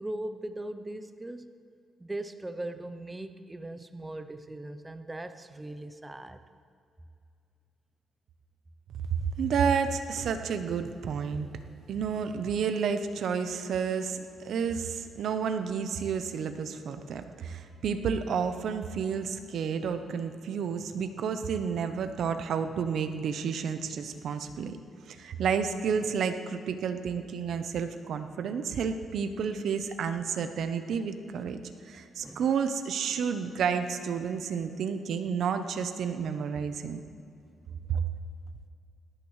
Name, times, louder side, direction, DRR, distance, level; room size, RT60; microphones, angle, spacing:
voice 1, 0.0-1.6 2.0-6.4 32.2-32.5, right 1 dB, 15° right, 10 dB, 0.6 m, -39 dB
voice 2, 9.4-11.5 11.9-24.8 25.1-37.0 37.9-38.0, right 6 dB, 70° right, 8 dB, 0.7 m, -31 dB
18.5 x 11.5 x 3.2 m, 2.5 s
cardioid pair, 90°, 0 cm